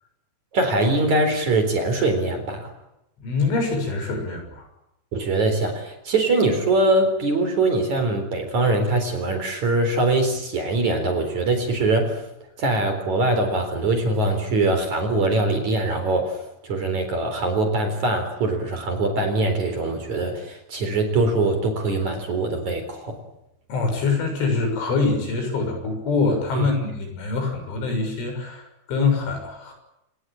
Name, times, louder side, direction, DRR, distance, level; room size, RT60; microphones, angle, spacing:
voice 1, 0.5-2.7 5.1-12.2 12.6-23.2 26.5-26.7, right 2 dB, 40° right, 6 dB, 4.9 m, -22 dB
voice 2, 3.2-4.7 23.7-29.7, left 4 dB, 75° left, 4 dB, 9.2 m, -24 dB
28.0 x 19.5 x 8.9 m, 0.87 s
omnidirectional pair, 5.5 m